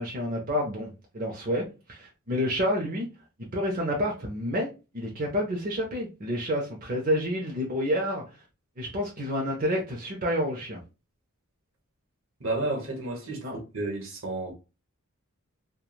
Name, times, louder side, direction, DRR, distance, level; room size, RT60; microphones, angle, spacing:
voice 1, 0.0-3.1 3.5-4.7 4.9-8.4 8.8-10.8 13.4-13.6, equal, 40° right, 0.6 m, -29 dB
voice 2, 12.4-14.5, right 2 dB, 70° right, 1.0 m, -31 dB
3.1 x 2.2 x 2.3 m
head